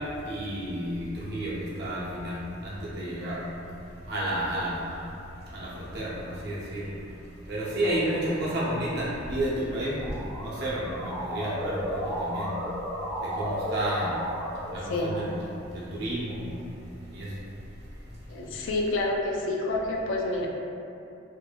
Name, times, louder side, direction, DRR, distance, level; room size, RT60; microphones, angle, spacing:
voice 1, 0.3-2.4 2.6-3.5 4.1-5.0 5.5-6.9 7.5-11.8 12.2-12.6 13.3-14.2 14.7-15.4 15.7-16.5 17.1-17.3, right 1 dB, 55° right, -7 dB, 0.6 m, -31 dB
Motor vehicle (road) / Siren, 9.7-15.6, equal, 5° left, 0.4 m, -34 dB
voice 2, 14.8-15.2 18.3-20.5, left 2 dB, 70° left, -1 dB, 0.4 m, -28 dB
2.5 x 2.5 x 2.2 m, 2.6 s
head